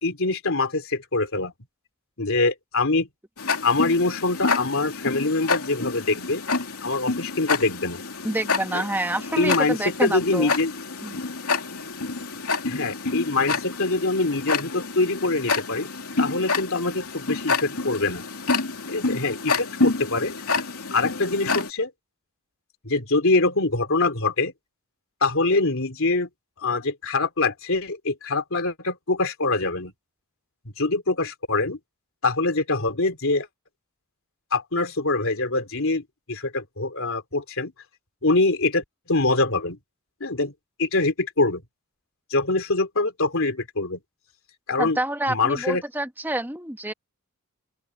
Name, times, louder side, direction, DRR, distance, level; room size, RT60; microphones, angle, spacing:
voice 1, 0.0-1.5 2.2-3.1 3.6-6.4 6.8-8.0 8.7-8.8 9.4-10.7 12.6-15.9 16.2-18.2 18.9-20.6 20.9-21.9 22.8-24.5 25.2-26.3 26.6-29.9 30.8-31.8 32.2-33.5 34.5-37.7 38.2-39.8 40.2-40.5 40.8-41.6 42.3-44.0 44.7-45.0 45.3-45.8, left 3 dB, 65° left, 3.4 m, -24 dB
Tick-tock, 3.4-21.7, left 4 dB, 80° left, 2.9 m, -28 dB
voice 2, 8.2-10.5 11.0-11.2 44.8-46.9, right 1 dB, 10° right, 1.5 m, -28 dB
open air
head